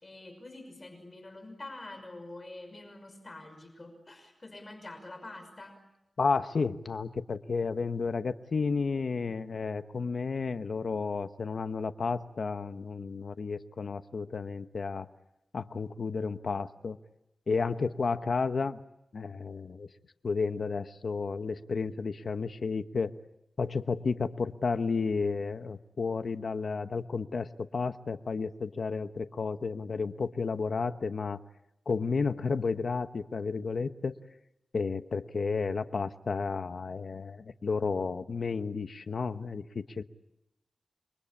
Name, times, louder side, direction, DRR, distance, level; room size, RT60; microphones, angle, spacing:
voice 1, 0.0-5.8, left 2 dB, 35° left, 7 dB, 5.9 m, -46 dB
voice 2, 6.2-15.1 15.5-17.0 17.5-18.8 19.1-19.9 20.2-23.1 23.6-31.4 31.9-34.1 34.7-40.0, left 4 dB, 65° left, 9 dB, 1.1 m, -32 dB
28.5 x 23.5 x 8.6 m, 0.87 s
wide cardioid pair, 95°, 0 cm